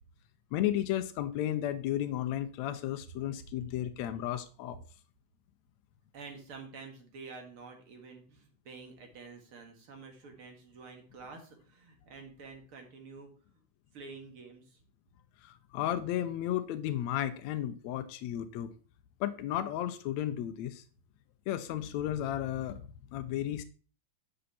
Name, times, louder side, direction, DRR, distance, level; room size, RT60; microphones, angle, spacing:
voice 1, 0.5-4.8 15.4-18.7 19.2-20.8 21.5-22.8 23.1-23.6, left 12 dB, 75° left, 9 dB, 2.0 m, -33 dB
voice 2, 6.1-13.6 13.9-14.8, right 4 dB, 50° right, 4 dB, 2.5 m, -49 dB
10.5 x 6.9 x 4.3 m, 0.38 s
omnidirectional pair, 3.4 m